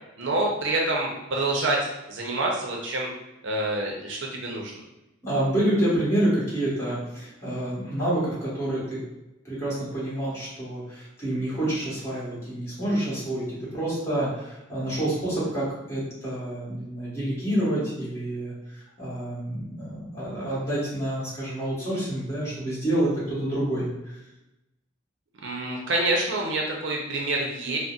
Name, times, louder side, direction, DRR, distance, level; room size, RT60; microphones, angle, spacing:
voice 1, 0.2-3.1 3.4-4.7 25.4-27.8, right 2 dB, 65° right, -1 dB, 0.5 m, -27 dB
voice 2, 5.2-9.0 9.4-24.2, right 1 dB, 15° left, -10 dB, 1.3 m, -28 dB
3.8 x 2.0 x 2.4 m, 0.94 s
head